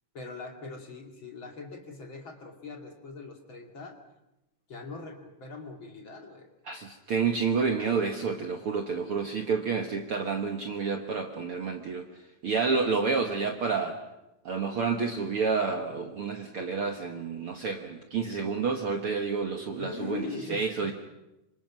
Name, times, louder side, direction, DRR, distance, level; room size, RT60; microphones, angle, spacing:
voice 1, 0.1-4.0 4.7-6.5 19.8-20.9, left 4 dB, 40° left, 2 dB, 2.8 m, -41 dB
voice 2, 6.7-12.1 12.4-14.0 14.5-20.9, right 5 dB, 55° right, 4 dB, 1.8 m, -29 dB
27.0 x 25.5 x 6.1 m, 0.94 s
omnidirectional pair, 3.9 m